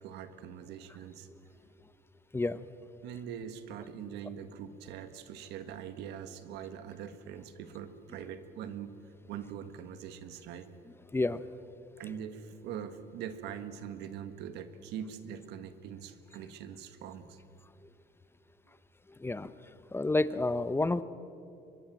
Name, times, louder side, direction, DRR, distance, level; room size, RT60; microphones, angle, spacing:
voice 1, 0.0-1.3 3.0-8.9 9.3-10.7 12.0-17.4, right 8 dB, 90° right, 10 dB, 1.6 m, -43 dB
voice 2, 2.3-2.6 11.1-11.4 19.2-19.5 19.9-21.0, left 2 dB, 15° left, 14 dB, 0.7 m, -29 dB
24.0 x 22.0 x 7.6 m, 2.7 s
cardioid pair, 110°, 17 cm